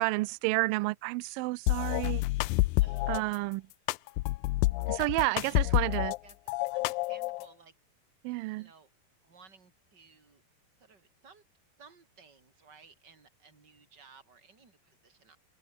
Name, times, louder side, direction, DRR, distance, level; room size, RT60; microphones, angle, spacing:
voice 1, 0.0-2.2 3.1-3.6 4.9-6.1 8.2-8.7, right 24 dB, 90° right, 2.0 m, -30 dB
sound 1, 1.7-3.2 3.9-6.2 6.5-7.5, left 21 dB, 85° left, 2.0 m, -28 dB
voice 2, 2.7-3.5 4.9-5.9 6.2-7.7 8.5-8.9 9.2-10.4 10.8-11.4 11.8-15.4, right 5 dB, 25° right, 4.4 m, -58 dB
open air
omnidirectional pair, 4.7 m